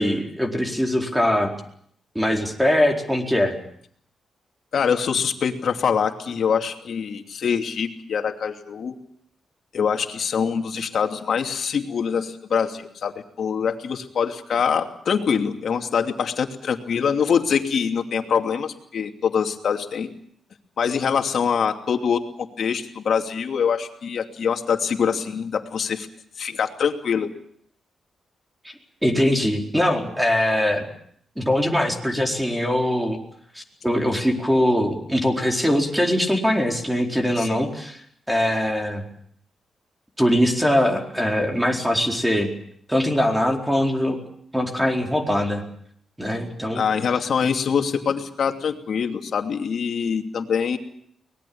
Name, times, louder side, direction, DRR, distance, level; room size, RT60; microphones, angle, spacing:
voice 1, 0.0-1.5 2.1-3.6 28.6-28.7 29.0-30.9 31.4-33.2 33.5-38.0 38.3-39.0 40.2-42.5 42.9-44.2 44.5-45.6 46.2-46.8, equal, 5° right, 3 dB, 4.3 m, -22 dB
voice 2, 4.7-8.9 9.7-20.1 20.8-22.2 22.6-26.1 26.4-27.3 37.4-37.6 46.7-50.8, left 7 dB, 65° left, 5 dB, 2.8 m, -24 dB
24.0 x 20.0 x 8.7 m, 0.66 s
cardioid pair, 100°, 0 cm